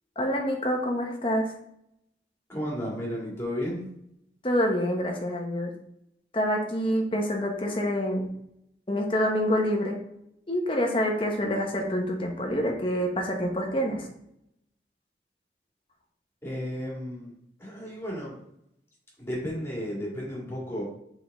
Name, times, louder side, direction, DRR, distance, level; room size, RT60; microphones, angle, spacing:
voice 1, 0.2-1.5 4.4-5.7 6.3-8.3 8.9-10.0 10.5-14.1, equal, 30° left, 1 dB, 1.0 m, -27 dB
voice 2, 2.5-3.9 16.4-17.3 17.6-18.4 19.2-20.8, equal, 15° left, -4 dB, 2.0 m, -33 dB
6.2 x 4.7 x 3.5 m, 0.76 s
head